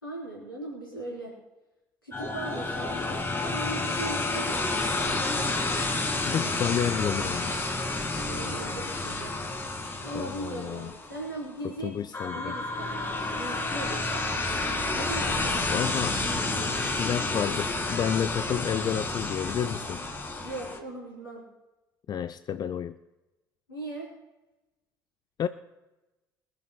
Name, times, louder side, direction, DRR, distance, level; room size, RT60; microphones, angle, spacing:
voice 1, 0.0-1.3 2.0-5.0 6.3-6.5 8.2-9.3 10.0-14.4 14.9-15.6 20.4-21.4 23.7-24.1, right 2 dB, 85° left, -5 dB, 4.0 m, -39 dB
sound 1, 2.1-11.4 12.1-20.8, left 2 dB, 20° left, 2.3 m, -30 dB
voice 2, 6.2-7.7 10.1-10.9 11.6-12.6 15.7-16.6 17.0-20.0 22.1-23.0 25.4-25.5, left 9 dB, 35° left, 11 dB, 0.5 m, -31 dB
24.0 x 11.0 x 2.3 m, 1.1 s
figure-of-eight pair, 55°, 11 cm